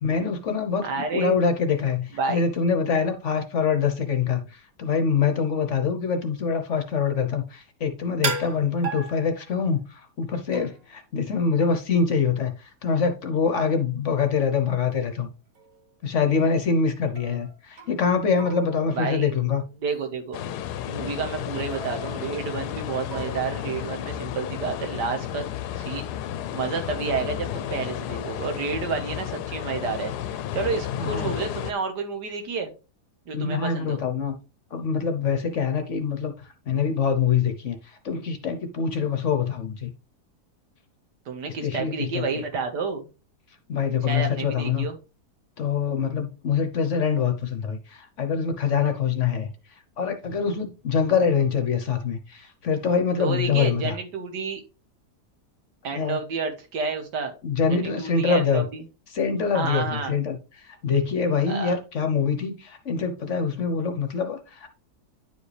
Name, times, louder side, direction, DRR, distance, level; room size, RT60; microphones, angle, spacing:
voice 1, 0.0-15.3 16.0-19.6 31.0-31.3 33.3-34.3 34.7-36.3 36.7-39.9 41.6-42.2 43.7-44.9 45.6-49.5 50.0-53.9 55.9-56.2 57.4-58.6 59.1-60.4 60.6-64.7, left 6 dB, 55° left, 1.0 m, -25 dB
voice 2, 0.8-1.4 2.1-2.4 18.9-19.3 19.8-20.4 20.9-25.5 25.8-26.1 26.5-32.7 33.3-34.0 41.3-43.1 44.0-45.0 53.2-54.6 55.8-57.3 57.7-58.8 59.5-60.2 61.5-61.7, right 4 dB, 80° right, 1.9 m, -30 dB
sound 1, 8.2-9.8 10.5-11.0 14.9-15.0 15.6-15.9 17.1-18.1 18.4-19.5 19.9-20.1 21.7-22.7 23.1-23.8, right 4 dB, 60° right, 1.5 m, -36 dB
sound 2, 20.3-31.7, left 11 dB, 75° left, 1.1 m, -32 dB
10.0 x 4.9 x 3.3 m
omnidirectional pair, 1.8 m